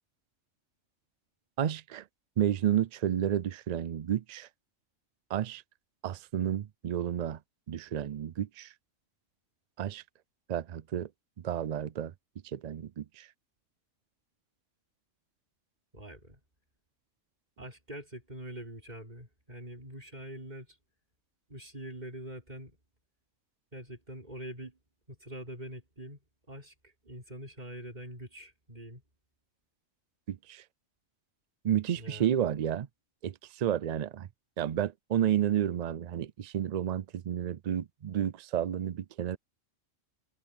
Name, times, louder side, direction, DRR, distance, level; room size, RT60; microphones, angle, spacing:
voice 1, 1.6-2.0 2.4-4.5 5.3-5.6 6.0-7.4 7.7-8.7 9.8-10.0 10.5-11.1 11.4-12.1 12.5-13.3 30.3-30.6 31.6-32.9 33.2-34.3 34.6-39.4, right 10 dB, 80° right, 0.3 m, -31 dB
voice 2, 15.9-16.4 17.6-20.8 21.5-22.8 23.7-24.8 25.1-26.2 26.5-29.0 32.0-32.4, right 1 dB, 35° right, 5.4 m, -44 dB
omnidirectional pair, 1.3 m